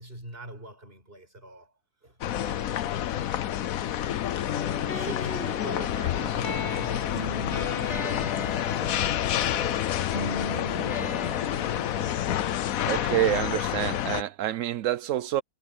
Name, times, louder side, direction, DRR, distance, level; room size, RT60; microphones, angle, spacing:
voice 1, 0.0-1.7 2.0-3.0 4.9-10.4 10.8-11.2, right 2 dB, 35° right, 6.4 m, -44 dB
sound 1, 2.2-14.2, left 11 dB, 65° left, 1.1 m, -29 dB
sound 2, 4.4-12.4, left 3 dB, 45° left, 2.5 m, -36 dB
voice 2, 12.8-15.4, right 13 dB, 65° right, 0.9 m, -27 dB
omnidirectional pair, 1.6 m